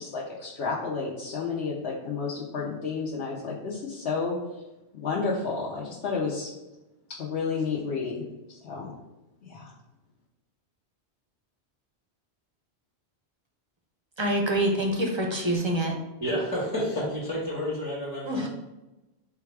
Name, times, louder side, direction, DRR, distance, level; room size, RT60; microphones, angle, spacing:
voice 1, 0.0-4.4 4.9-6.5 7.2-8.1 8.6-8.9 9.5-9.6, left 4 dB, 70° left, -5 dB, 1.0 m, -31 dB
voice 2, 14.2-15.9 18.2-18.5, right 1 dB, 40° right, 1 dB, 0.4 m, -26 dB
voice 3, 16.2-18.5, equal, 20° left, -6 dB, 1.1 m, -30 dB
3.9 x 2.4 x 4.6 m, 1.0 s
omnidirectional pair, 1.1 m